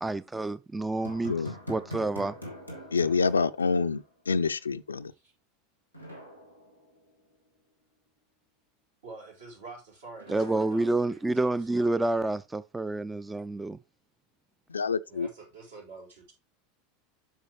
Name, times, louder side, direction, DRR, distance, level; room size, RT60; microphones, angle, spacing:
voice 1, 0.0-2.3 10.3-13.7, right 2 dB, 10° right, 0.3 m, -29 dB
sound 1, 1.0-4.3 4.6-4.7 5.9-7.4 10.2-11.8, right 1 dB, 90° right, 1.8 m, -44 dB
voice 2, 2.9-5.1 14.7-15.3, left 5 dB, 80° left, 0.4 m, -27 dB
voice 3, 9.0-12.0 15.1-16.3, right 3 dB, 70° right, 4.0 m, -47 dB
8.0 x 6.1 x 3.0 m
figure-of-eight pair, 80°, 0 cm